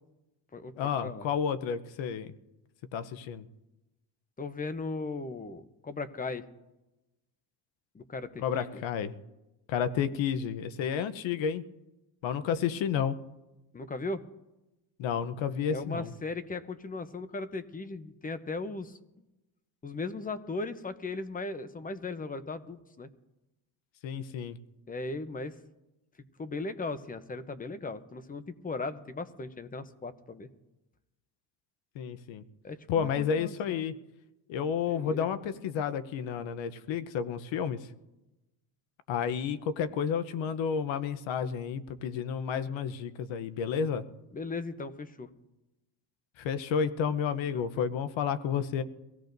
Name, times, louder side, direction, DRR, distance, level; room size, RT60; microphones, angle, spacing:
voice 1, 0.8-2.3 2.9-3.5 8.4-9.1 9.7-11.6 12.2-13.2 15.0-16.1 24.0-24.6 31.9-32.4 32.9-34.0 34.5-37.9 39.1-44.0 46.4-48.8, left 7 dB, 70° left, 13 dB, 0.9 m, -31 dB
voice 2, 4.4-6.5 7.9-8.8 13.7-14.3 15.7-19.0 19.8-23.1 24.9-25.6 26.4-30.5 32.6-33.8 34.9-35.3 44.3-45.3 47.5-47.7, left 3 dB, 20° left, 12 dB, 0.7 m, -37 dB
23.5 x 16.5 x 2.6 m, 0.99 s
cardioid pair, 125°, 48 cm